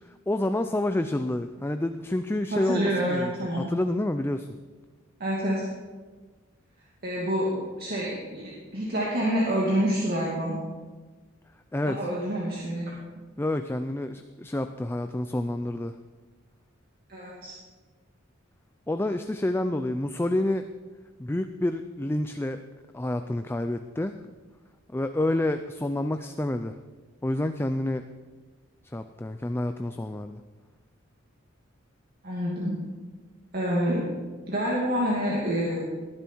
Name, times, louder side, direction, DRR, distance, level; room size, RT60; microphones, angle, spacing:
voice 1, 0.3-3.3 3.6-4.5 11.7-12.0 13.4-15.9 18.9-20.7 21.2-22.6 22.9-24.2 24.9-26.8 27.2-28.0 28.9-30.4, left 1 dB, 10° left, 8 dB, 0.4 m, -28 dB
voice 2, 2.5-3.6 5.2-5.7 7.0-10.6 11.9-12.9 17.1-17.5 32.2-32.8 33.5-34.1 34.5-35.8, equal, 50° right, -4 dB, 2.4 m, -27 dB
19.0 x 10.5 x 4.6 m, 1.3 s
head